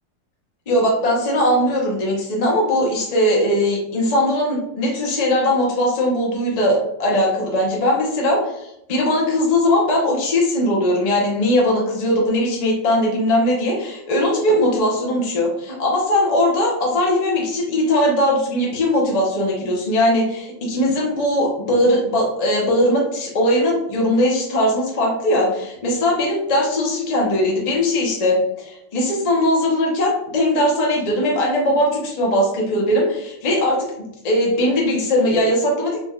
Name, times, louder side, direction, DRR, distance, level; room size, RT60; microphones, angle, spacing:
voice 1, 0.7-36.0, left 1 dB, 60° left, -2 dB, 0.4 m, -19 dB
4.1 x 3.3 x 2.3 m, 0.82 s
omnidirectional pair, 2.1 m